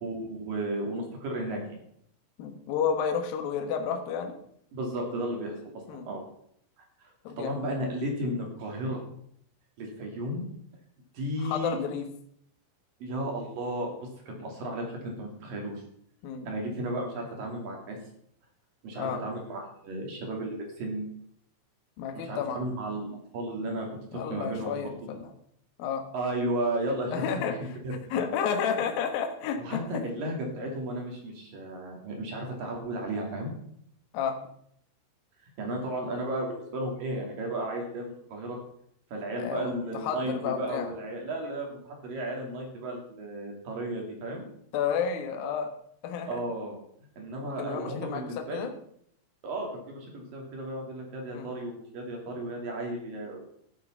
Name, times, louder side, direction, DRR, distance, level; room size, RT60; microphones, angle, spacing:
voice 1, 0.0-1.6 4.7-6.2 7.4-9.0 9.8-10.4 11.1-11.8 13.0-13.9 14.3-15.8 16.5-18.0 18.8-21.1 22.1-23.9 24.1-24.8 26.1-28.2 29.6-33.5 35.6-38.6 39.1-44.4 46.3-46.8 47.2-48.7 49.4-53.5, right 1 dB, 50° right, 1 dB, 4.0 m, -34 dB
voice 2, 2.4-4.4 5.9-6.1 7.2-7.6 11.4-12.1 16.2-16.5 19.0-19.2 22.0-22.7 24.1-25.3 25.8-26.0 27.1-27.8 28.1-30.0 34.1-34.4 39.4-40.9 44.7-45.7 46.0-46.4 47.4-48.7 51.3-51.5, left 7 dB, 65° left, 5 dB, 2.6 m, -31 dB
14.5 x 7.8 x 5.7 m, 0.68 s
omnidirectional pair, 5.5 m